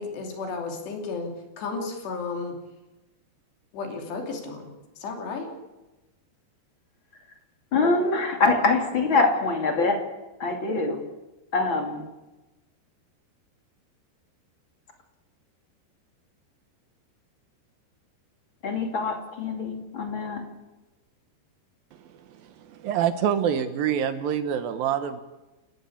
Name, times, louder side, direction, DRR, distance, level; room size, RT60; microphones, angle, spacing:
voice 1, 0.0-2.5 3.7-4.7 5.0-5.5, left 4 dB, 75° left, 3 dB, 5.1 m, -33 dB
voice 2, 7.7-10.0 10.4-11.0 11.5-12.1 18.6-20.4, left 3 dB, 35° left, 3 dB, 2.6 m, -24 dB
voice 3, 22.3-25.2, right 9 dB, 70° right, 10 dB, 2.4 m, -26 dB
28.5 x 13.5 x 8.5 m, 1.1 s
omnidirectional pair, 5.0 m